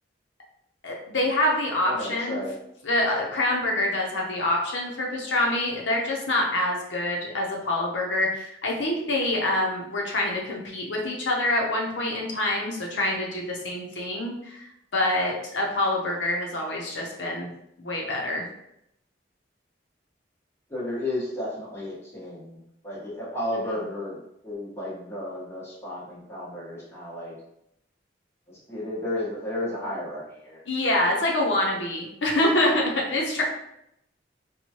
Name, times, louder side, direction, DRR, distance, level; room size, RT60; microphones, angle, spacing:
voice 1, 0.8-2.4 2.8-14.6 14.9-17.5 17.8-18.4 30.7-33.4, left 1 dB, 85° left, -1 dB, 0.8 m, -26 dB
voice 2, 1.8-2.5 20.7-27.3 28.5-30.6, left 1 dB, 15° left, -7 dB, 1.1 m, -33 dB
4.5 x 2.3 x 2.8 m, 0.79 s
head